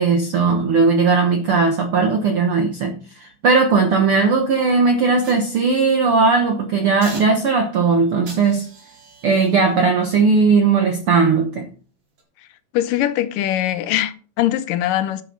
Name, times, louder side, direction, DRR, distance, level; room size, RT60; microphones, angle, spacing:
voice 1, 0.0-8.7 9.2-11.7, right 4 dB, 70° right, 1.3 m, -17 dB
sound 1, 5.2-6.2 7.0-7.8 8.3-11.5 12.0-12.2, right 3 dB, 85° right, 6.0 m, -44 dB
voice 2, 12.7-15.2, left 12 dB, 80° left, 2.3 m, -21 dB
11.0 x 6.9 x 5.4 m
omnidirectional pair, 4.0 m